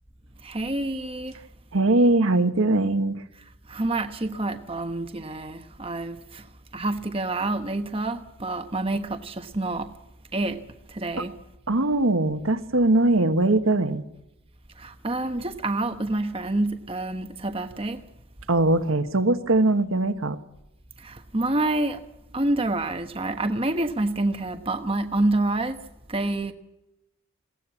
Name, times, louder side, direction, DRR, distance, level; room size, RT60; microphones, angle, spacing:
voice 1, 0.4-1.4 3.7-6.5 6.7-10.0 10.3-11.4 14.8-18.1 21.0-22.0 22.3-25.8 26.1-26.5, right 2 dB, 25° right, 1.1 m, -28 dB
voice 2, 1.7-3.2 11.2-11.3 11.7-14.0 18.5-20.4, right 2 dB, 80° right, 1.5 m, -21 dB
22.0 x 17.5 x 7.2 m
head